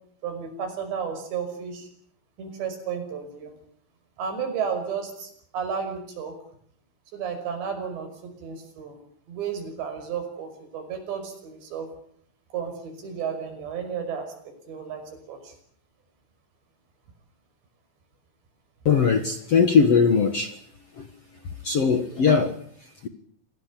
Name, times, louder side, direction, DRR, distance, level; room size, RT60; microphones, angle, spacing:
voice 1, 0.2-1.9 2.4-3.5 4.2-6.3 7.1-9.0 9.3-11.9 12.5-15.5, right 7 dB, 65° right, 7 dB, 7.8 m, -33 dB
voice 2, 18.8-20.6 20.9-21.1 21.4-23.1, left 5 dB, 65° left, 7 dB, 1.5 m, -21 dB
27.5 x 18.0 x 8.5 m, 0.64 s
omnidirectional pair, 5.5 m